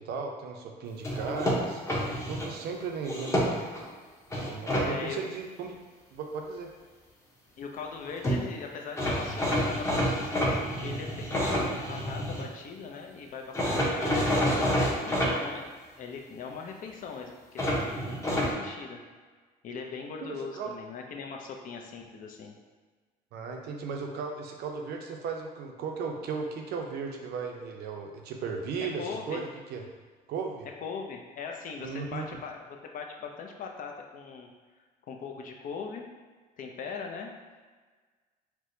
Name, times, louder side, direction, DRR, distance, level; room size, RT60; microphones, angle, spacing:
voice 1, 0.0-3.6 4.3-5.7 6.1-6.7 20.3-20.7 23.3-29.8 30.3-30.7 31.8-32.3, right 5 dB, 75° right, 2 dB, 0.5 m, -36 dB
sound 1, 1.0-2.5 3.0-3.8 4.3-4.9 8.0-8.1 8.2-8.4 9.0-12.4 13.5-15.3 17.6-18.5, equal, 15° left, 0.8 m, -28 dB
voice 2, 4.8-5.2 7.6-14.3 15.0-15.7 16.0-17.6 18.5-19.0 19.6-22.5 29.0-29.4 30.8-34.5 35.1-36.1 36.6-37.3, left 5 dB, 55° left, 2 dB, 0.5 m, -40 dB
4.5 x 2.1 x 2.7 m, 1.4 s
cardioid pair, 110°, 17 cm